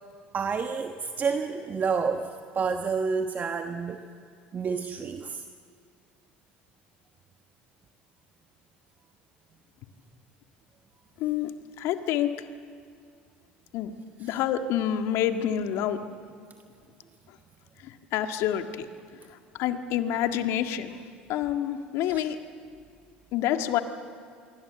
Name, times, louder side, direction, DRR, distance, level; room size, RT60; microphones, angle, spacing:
voice 1, 0.3-4.0 4.5-5.4 14.2-14.4 22.0-22.3, right 5 dB, 35° right, 7 dB, 1.3 m, -29 dB
voice 2, 11.2-11.5 11.8-12.3 13.7-13.9 14.2-16.0 17.8-18.9 19.6-20.9 21.3-22.4 23.3-23.8, left 10 dB, 60° left, 7 dB, 1.8 m, -27 dB
26.0 x 23.0 x 7.7 m, 2.3 s
hypercardioid pair, 70°, 5 cm